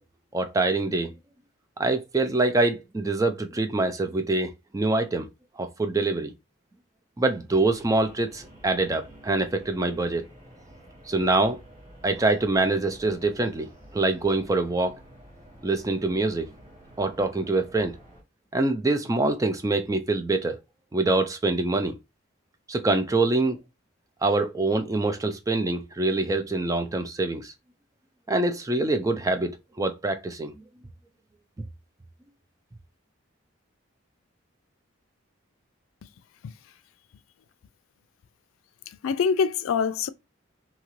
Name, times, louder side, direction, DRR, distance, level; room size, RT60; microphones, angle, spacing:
voice 1, 0.3-1.1 1.8-5.3 5.6-6.3 7.2-10.3 11.1-11.6 12.0-15.0 15.6-16.5 17.0-18.0 18.5-20.6 20.9-22.0 22.7-23.6 24.2-27.5 28.3-30.5, right 2 dB, 15° right, 0.3 m, -25 dB
sound 1, 7.5-18.2, equal, 45° right, 1.4 m, -50 dB
voice 2, 38.9-40.1, left 6 dB, 80° left, 0.3 m, -25 dB
2.8 x 2.4 x 3.0 m
head